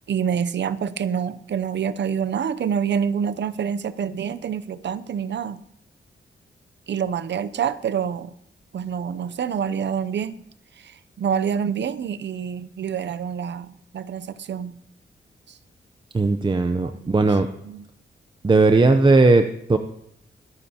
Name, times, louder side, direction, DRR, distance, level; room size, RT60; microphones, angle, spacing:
voice 1, 0.1-5.6 6.9-8.3 8.7-10.4 10.8-14.7 16.8-17.3 17.7-17.8, right 7 dB, 65° right, 16 dB, 0.6 m, -27 dB
voice 2, 16.1-17.5 18.4-19.8, right 3 dB, 25° right, 7 dB, 0.6 m, -17 dB
22.0 x 10.0 x 2.9 m, 0.75 s
cardioid pair, 90°, 19 cm